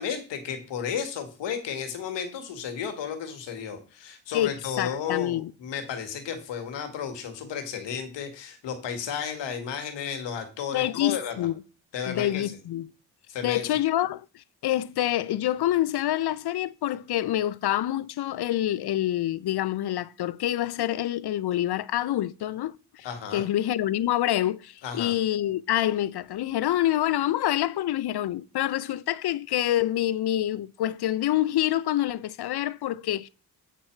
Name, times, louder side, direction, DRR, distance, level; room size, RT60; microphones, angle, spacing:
voice 1, 0.0-11.5 11.9-12.4 13.3-13.8 23.0-23.4 24.8-25.1, left 7 dB, 85° left, 1.8 m, -33 dB
voice 2, 4.3-5.5 10.7-11.5 12.1-12.9 13.4-23.1 23.3-33.3, left 13 dB, 65° left, 0.6 m, -27 dB
8.5 x 4.4 x 7.3 m
supercardioid pair, 50°, 42 cm